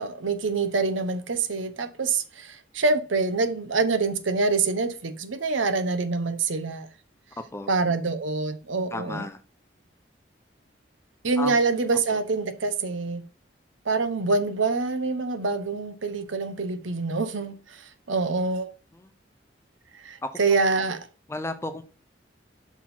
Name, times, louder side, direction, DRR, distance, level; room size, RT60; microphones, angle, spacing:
voice 1, 0.0-6.9 7.7-9.3 11.2-13.2 13.8-18.7 19.9-21.0, right 3 dB, 90° right, 0.8 m, -26 dB
voice 2, 8.9-9.4 11.4-11.6 12.1-12.2 19.0-19.1 20.2-20.3 21.3-21.8, left 2 dB, 15° left, 0.5 m, -33 dB
5.9 x 4.2 x 4.2 m
head